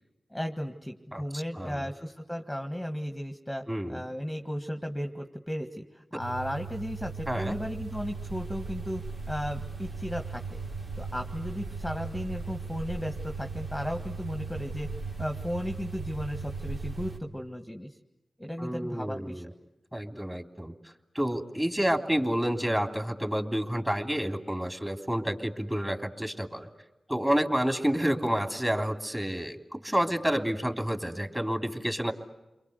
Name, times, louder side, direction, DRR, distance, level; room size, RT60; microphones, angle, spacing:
voice 1, 0.3-9.0 9.3-10.6 11.0-14.9 15.2-18.0 18.4-19.5, equal, 5° left, 5 dB, 1.8 m, -35 dB
voice 2, 1.1-1.9 3.7-4.0 7.3-7.6 18.6-19.5 19.9-26.7 27.1-32.1, equal, 10° right, 5 dB, 3.2 m, -29 dB
sound 1, 6.2-17.2, right 4 dB, 60° right, 3.7 m, -38 dB
30.0 x 23.0 x 8.1 m, 0.98 s
cardioid pair, 50°, 0 cm